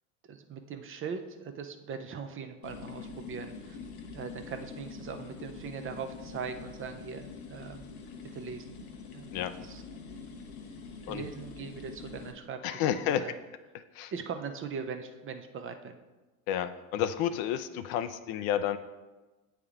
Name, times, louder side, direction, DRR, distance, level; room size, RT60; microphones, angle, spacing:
voice 1, 0.2-3.8 4.1-7.9 8.3-8.8 9.1-9.3 9.6-9.8 11.1-13.3 14.1-16.0, right 6 dB, 30° right, 7 dB, 0.5 m, -40 dB
sound 1, 2.6-12.3, left 5 dB, 80° left, 0.9 m, -45 dB
voice 2, 12.6-13.2 14.0-14.1 16.5-18.8, left 10 dB, 55° left, 12 dB, 0.5 m, -30 dB
8.4 x 3.5 x 3.5 m, 1.2 s
hypercardioid pair, 75°, 43 cm